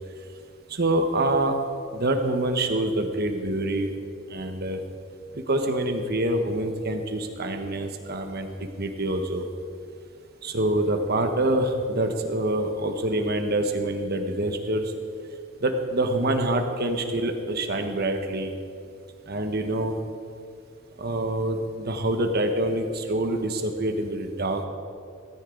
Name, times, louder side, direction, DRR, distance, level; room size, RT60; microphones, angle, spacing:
voice 1, 0.7-1.6 1.9-3.9 4.3-4.8 5.3-9.5 10.4-14.9 15.6-18.5 19.3-19.9 21.0-24.7, right 1 dB, 50° right, 5 dB, 1.3 m, -26 dB
17.0 x 14.5 x 4.0 m, 2.3 s
head